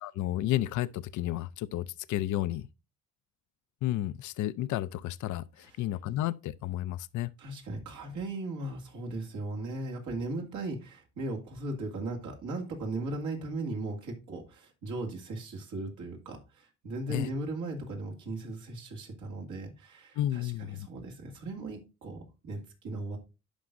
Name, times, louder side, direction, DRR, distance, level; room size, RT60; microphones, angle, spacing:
voice 1, 0.0-2.7 3.8-7.3 17.1-17.3 20.2-20.9, left 14 dB, 75° left, 0.5 m, -32 dB
voice 2, 7.4-23.2, right 2 dB, 75° right, 2.3 m, -37 dB
11.5 x 4.8 x 2.6 m
cardioid pair, 90°, 30 cm